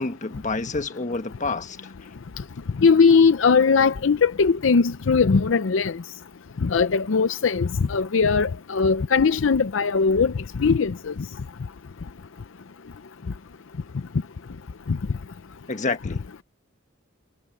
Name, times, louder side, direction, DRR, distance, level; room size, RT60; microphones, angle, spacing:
voice 1, 0.0-1.9 15.7-16.4, left 3 dB, 40° left, 1.3 m, -29 dB
voice 2, 2.8-5.9 6.6-10.3 10.6-10.9, left 5 dB, 70° left, 0.6 m, -19 dB
head